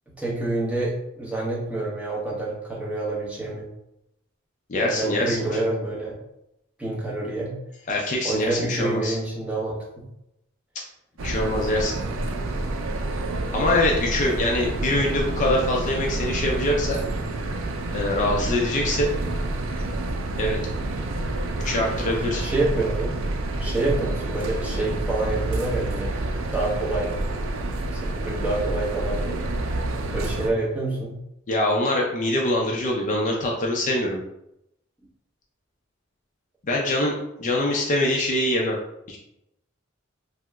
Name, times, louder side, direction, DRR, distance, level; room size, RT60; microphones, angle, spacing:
voice 1, 0.2-3.7 4.8-6.2 6.8-7.6 8.2-10.0 22.4-23.1 23.6-26.1 26.5-27.1 27.9-29.4 30.1-31.2, right 2 dB, 5° right, -6 dB, 0.8 m, -27 dB
voice 2, 4.7-5.5 7.9-9.2 11.2-11.9 13.5-17.0 17.9-19.1 20.4-20.6 21.6-22.5 31.5-34.2 36.6-38.8 39.1-39.2, left 1 dB, 40° left, -1 dB, 0.4 m, -24 dB
sound 1, 11.2-30.5, right 2 dB, 70° right, 0.4 m, -28 dB
2.8 x 2.1 x 3.4 m, 0.82 s
head